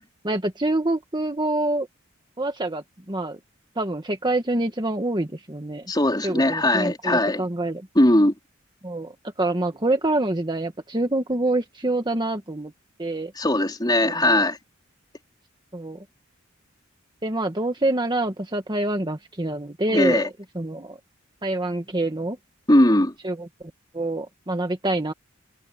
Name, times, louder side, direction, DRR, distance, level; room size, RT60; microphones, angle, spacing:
voice 1, 0.2-1.9 2.4-3.4 3.7-5.9 6.2-7.9 8.8-12.7 13.0-13.3 14.0-14.5 15.7-16.0 17.2-21.0 21.4-22.4 23.2-23.5 23.9-25.1, right 2 dB, 20° right, 1.6 m, -26 dB
voice 2, 5.9-7.4 8.0-8.3 13.4-14.6 19.9-20.3 22.7-23.1, left 1 dB, 20° left, 3.7 m, -19 dB
head